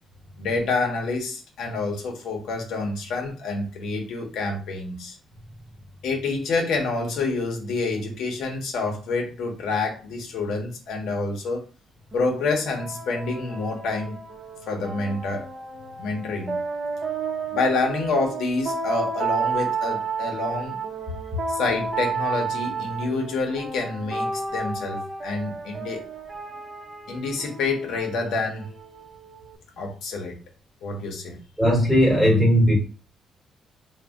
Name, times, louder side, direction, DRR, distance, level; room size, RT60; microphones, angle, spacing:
voice 1, 0.4-5.1 6.0-11.6 12.1-14.2 14.7-15.5 16.0-16.5 17.5-20.8 21.5-26.0 27.1-28.7 29.8-30.4 30.8-31.4, left 3 dB, 80° left, 1 dB, 0.7 m, -27 dB
sound 1, 12.1-29.6, right 4 dB, 35° right, 0.7 m, -32 dB
voice 2, 31.6-32.7, equal, ahead, -3 dB, 1.1 m, -17 dB
2.6 x 2.1 x 3.3 m, 0.35 s
cardioid pair, 160°, 0 cm